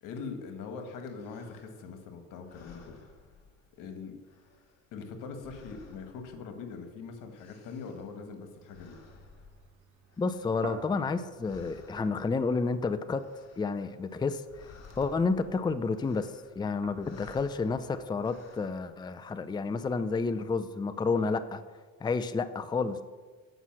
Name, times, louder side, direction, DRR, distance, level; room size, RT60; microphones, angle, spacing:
voice 1, 0.0-3.1 3.8-4.2 4.9-9.0, left 5 dB, 85° left, 6 dB, 1.5 m, -42 dB
sound 1, 1.0-2.0 2.4-3.9 4.2-6.9 7.1-11.1 11.4-12.6 13.0-14.1 14.3-18.9, left 4 dB, 55° left, 1.9 m, -56 dB
sound 2, 8.4-15.3 15.7-21.5, right 7 dB, 75° right, 1.3 m, -53 dB
voice 2, 10.2-13.2 13.6-14.7 15.0-21.6 22.0-23.0, left 4 dB, 15° left, 11 dB, 0.5 m, -30 dB
8.0 x 5.6 x 7.5 m, 1.4 s
cardioid pair, 95°, 31 cm